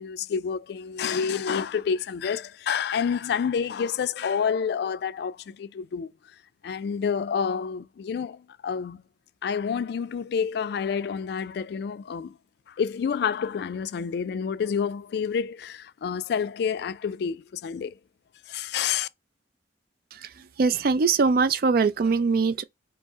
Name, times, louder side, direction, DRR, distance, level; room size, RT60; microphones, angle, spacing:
voice 1, 0.0-6.1 6.6-9.0 9.4-12.4 12.7-18.0 18.5-19.1, left 6 dB, 60° left, 0.3 m, -28 dB
voice 2, 20.6-22.6, right 4 dB, 55° right, 0.4 m, -22 dB
5.3 x 2.0 x 3.5 m
head